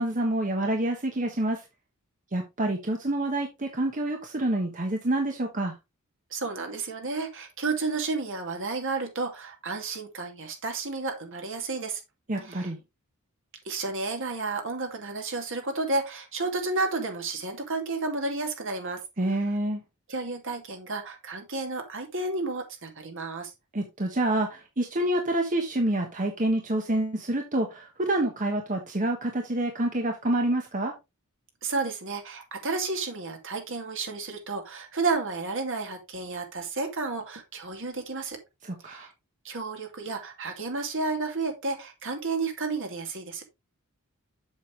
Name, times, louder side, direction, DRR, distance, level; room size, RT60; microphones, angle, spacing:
voice 1, 0.0-1.6 2.3-5.7 12.3-12.8 19.2-19.8 23.7-30.9 38.6-39.1, right 1 dB, 35° right, 1.2 m, -27 dB
voice 2, 6.3-12.0 12.4-12.7 13.6-19.0 19.3-19.4 20.1-23.5 31.6-38.4 38.8-39.1 39.4-43.4, right 3 dB, 60° right, 2.4 m, -31 dB
7.5 x 7.0 x 3.3 m
head